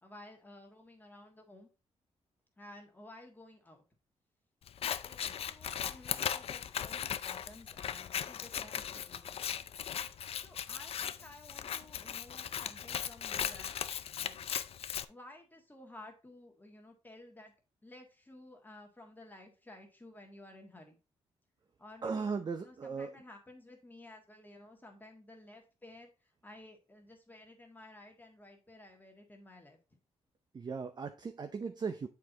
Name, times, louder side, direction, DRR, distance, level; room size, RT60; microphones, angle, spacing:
voice 1, 0.0-1.7 2.6-3.8 4.8-9.5 10.4-14.5 15.1-17.5 17.8-21.0 21.8-22.3 22.6-29.8, left 1 dB, 15° left, 1.6 m, -54 dB
Scissors, 4.7-15.1, left 9 dB, 60° left, 0.5 m, -38 dB
voice 2, 22.0-23.1 30.5-32.1, right 5 dB, 40° right, 0.6 m, -37 dB
7.4 x 4.6 x 3.8 m
cardioid pair, 90°, 12 cm